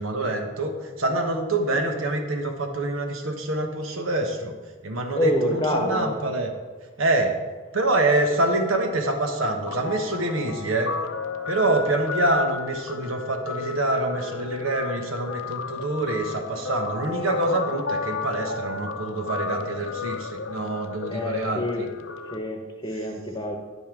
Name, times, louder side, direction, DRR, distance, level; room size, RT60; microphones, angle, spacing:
voice 1, 0.0-4.5 4.8-6.5 7.0-7.4 7.7-10.9 11.5-21.9 22.9-23.1, right 2 dB, 80° right, 4 dB, 1.2 m, -26 dB
voice 2, 5.2-6.2 21.1-21.8 22.3-23.6, left 1 dB, 20° left, 3 dB, 1.0 m, -26 dB
Guitar, 9.7-22.4, left 4 dB, 70° left, 0.7 m, -33 dB
9.9 x 5.5 x 6.0 m, 1.3 s
head